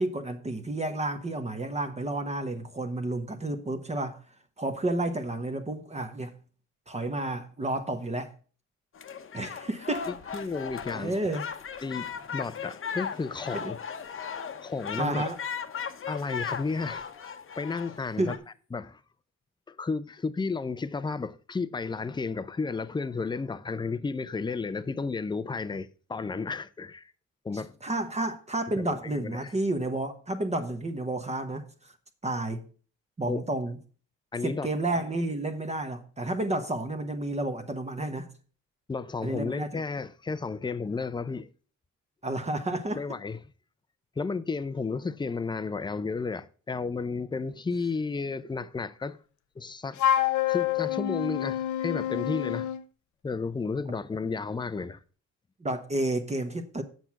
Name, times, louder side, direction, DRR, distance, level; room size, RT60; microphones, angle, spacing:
voice 1, 0.0-4.2 4.6-6.3 6.9-8.3 9.3-10.1 10.9-11.5 15.0-15.4 18.2-18.4 27.8-31.7 32.2-32.6 33.2-33.8 34.4-38.3 39.2-39.7 42.2-43.0 55.6-56.8, right 2 dB, 20° right, 1.1 m, -31 dB
sound 1, 8.9-18.4, left 6 dB, 45° left, 1.0 m, -37 dB
voice 2, 10.3-11.3 11.8-13.8 14.6-15.2 16.1-17.1 17.6-18.4 18.7-19.0 19.7-27.1 27.4-27.8 28.8-29.5 33.3-33.5 34.3-34.7 38.9-41.5 42.9-43.4 44.2-49.2 49.6-50.0 50.5-52.7 53.2-55.0, left 4 dB, 15° left, 0.6 m, -32 dB
Wind instrument woodwind instrument, 50.0-52.8, left 11 dB, 75° left, 0.7 m, -27 dB
7.9 x 6.1 x 5.8 m
cardioid pair, 90°, 30 cm